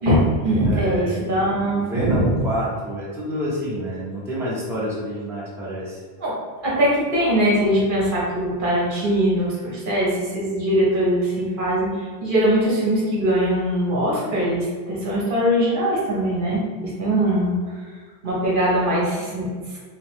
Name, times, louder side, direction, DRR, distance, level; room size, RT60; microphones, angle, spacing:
voice 1, 0.0-2.2 6.2-6.3 6.6-11.9 12.2-17.5 18.2-19.5, equal, 55° right, -5 dB, 1.0 m, -21 dB
voice 2, 0.6-1.4 1.7-6.0, equal, 5° right, -7 dB, 0.6 m, -28 dB
3.5 x 3.0 x 3.0 m, 1.5 s
omnidirectional pair, 1.1 m